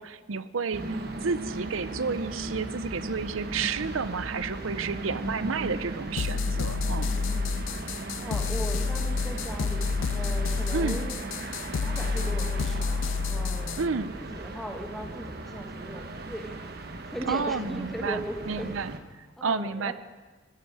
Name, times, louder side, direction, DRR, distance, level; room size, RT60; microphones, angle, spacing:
voice 1, 0.0-7.1 10.7-11.1 13.8-14.1 17.3-18.9 19.4-19.9, right 5 dB, 85° right, 14 dB, 0.6 m, -31 dB
sound 1, 0.7-19.0, right 2 dB, 50° right, 1.1 m, -37 dB
sound 2, 6.2-13.9, left 4 dB, 75° left, 0.4 m, -29 dB
voice 2, 8.2-11.2 11.8-13.9 14.1-16.5 16.9-18.7 19.4-19.9, equal, ahead, 2 dB, 1.3 m, -38 dB
14.5 x 14.0 x 4.9 m, 1.3 s
head